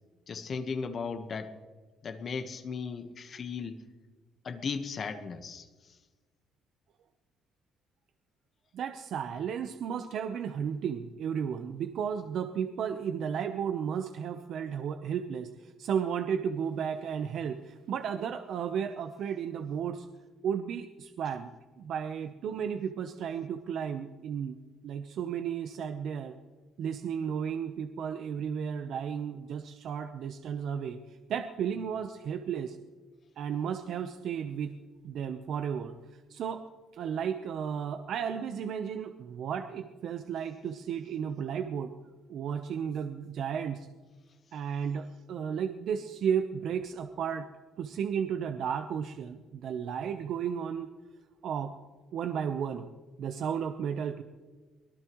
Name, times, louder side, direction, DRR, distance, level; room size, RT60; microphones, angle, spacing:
voice 1, 0.3-1.6 2.0-3.8 4.4-5.7, left 5 dB, 45° left, 8 dB, 1.2 m, -36 dB
voice 2, 8.7-20.1 20.4-21.5 21.8-26.4 26.8-31.0 31.3-32.8 33.4-34.8 35.0-36.6 36.9-41.9 42.3-43.9 44.5-47.5 47.8-50.9 51.4-51.7 52.1-52.9 53.2-54.2, right 7 dB, 65° right, 8 dB, 0.8 m, -33 dB
23.5 x 18.5 x 3.1 m, 1.3 s
cardioid pair, 105°, 0 cm